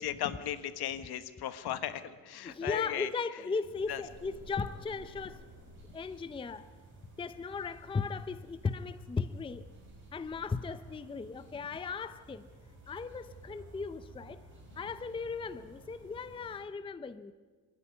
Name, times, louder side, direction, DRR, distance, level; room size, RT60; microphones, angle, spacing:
voice 1, 0.0-3.4 3.9-4.0, left 11 dB, 65° left, 1.4 m, -37 dB
voice 2, 2.4-5.4 5.9-6.7 7.2-9.7 10.1-12.4 12.9-14.4 14.8-17.3, left 4 dB, 15° left, 0.6 m, -37 dB
sound 1, 3.6-16.6, right 2 dB, 25° right, 6.0 m, -54 dB
26.5 x 10.0 x 9.6 m
cardioid pair, 115°, 42 cm